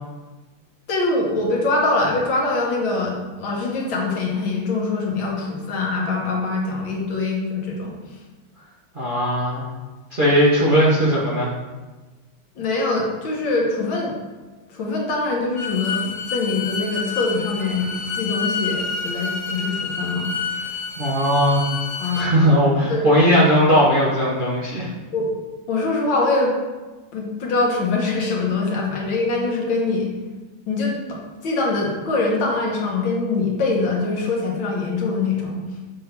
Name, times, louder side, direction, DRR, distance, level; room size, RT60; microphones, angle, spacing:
voice 1, 0.9-8.0 12.6-14.1 14.7-17.9 18.2-20.3 22.0-22.4 22.9-23.1 25.1-25.3 25.7-26.5 27.1-30.1 30.7-35.6, left 3 dB, 70° left, -2 dB, 2.0 m, -23 dB
voice 2, 8.9-9.7 10.1-11.5 21.0-21.6 22.0-24.9, equal, 35° right, -7 dB, 1.0 m, -18 dB
Bowed string instrument, 15.6-22.3, left 5 dB, 45° left, 1.0 m, -29 dB
6.9 x 3.6 x 5.8 m, 1.2 s
omnidirectional pair, 2.3 m